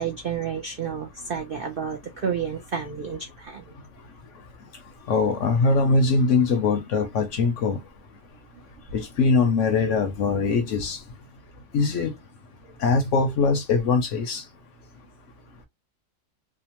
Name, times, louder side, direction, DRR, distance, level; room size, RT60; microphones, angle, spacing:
voice 1, 0.0-3.6, right 7 dB, 80° right, 0.4 m, -30 dB
voice 2, 5.1-7.8 8.9-11.0 11.7-12.1 12.8-14.4, left 4 dB, 65° left, 0.8 m, -22 dB
2.7 x 2.1 x 2.8 m
omnidirectional pair, 1.6 m